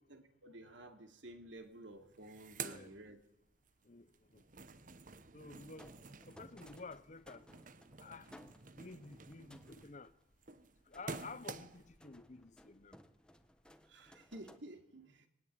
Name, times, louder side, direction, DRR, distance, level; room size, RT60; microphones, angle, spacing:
voice 1, 0.1-3.2 13.8-15.3, right 1 dB, 70° right, 2.9 m, -53 dB
sound 1, 1.6-1.7 1.9-3.7 4.1-12.0, right 5 dB, 40° right, 1.0 m, -50 dB
voice 2, 2.6-2.9 3.8-4.5 5.3-5.9 6.3-7.5 8.0-8.3 8.8-10.1 10.9-13.0, left 3 dB, 40° left, 0.8 m, -52 dB
sound 2, 5.6-14.6, equal, 5° left, 1.3 m, -62 dB
21.0 x 19.0 x 8.7 m
head